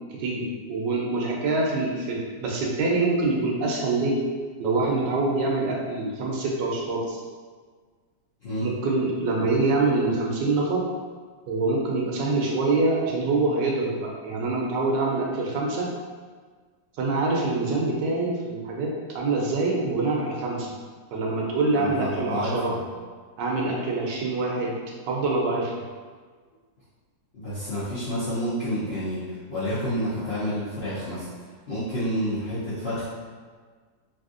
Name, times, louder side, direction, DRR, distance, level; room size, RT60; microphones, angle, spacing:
voice 1, 0.1-4.2 4.6-7.2 8.6-10.8 11.5-15.9 17.0-20.7 21.1-22.7 23.4-24.7 25.1-25.7, right 3 dB, 85° right, -2 dB, 1.3 m, -25 dB
voice 2, 21.7-22.8 27.3-33.0, equal, 50° left, -12 dB, 0.8 m, -29 dB
3.3 x 2.6 x 2.4 m, 1.5 s
omnidirectional pair, 1.9 m